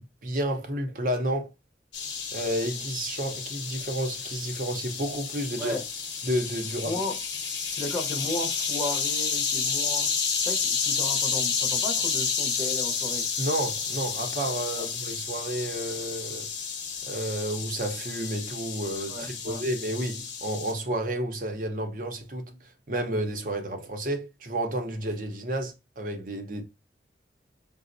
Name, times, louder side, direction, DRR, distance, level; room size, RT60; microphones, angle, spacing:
voice 1, 0.0-1.5 2.3-5.8 6.2-6.9 13.4-16.5 17.0-26.6, right 1 dB, 45° right, 0.6 m, -31 dB
sound 1, 1.9-20.7, left 6 dB, 75° left, 0.7 m, -31 dB
voice 2, 6.9-7.2 7.7-10.1 10.4-13.3 14.8-14.9 19.1-19.6, left 1 dB, ahead, 0.7 m, -34 dB
4.9 x 2.0 x 2.5 m
head